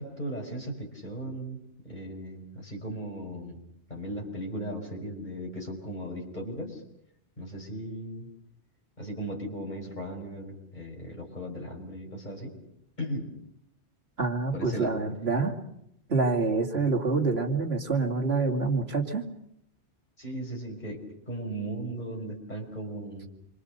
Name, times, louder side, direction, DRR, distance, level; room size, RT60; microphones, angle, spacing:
voice 1, 0.0-3.6 3.9-6.8 7.4-8.3 9.0-12.6 13.0-13.3 14.5-15.0 20.2-23.3, right 1 dB, 40° left, 0 dB, 6.0 m, -37 dB
voice 2, 14.2-15.6 16.1-19.3, right 3 dB, 60° right, 2 dB, 2.8 m, -26 dB
28.0 x 24.0 x 6.7 m, 0.77 s
omnidirectional pair, 1.2 m